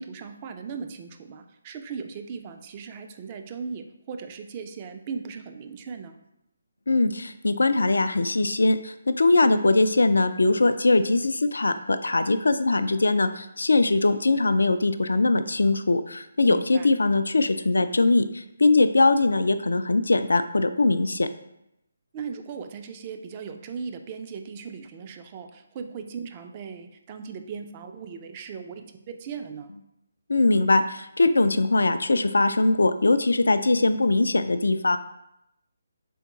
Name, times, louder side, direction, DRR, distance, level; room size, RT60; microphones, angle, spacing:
voice 1, 0.0-6.2 16.4-16.9 22.1-29.7, right 5 dB, 30° right, 6 dB, 0.4 m, -38 dB
voice 2, 6.9-21.3 30.3-35.0, left 2 dB, 80° left, 11 dB, 0.3 m, -21 dB
3.6 x 3.5 x 2.9 m, 0.82 s
figure-of-eight pair, 150°, 0 cm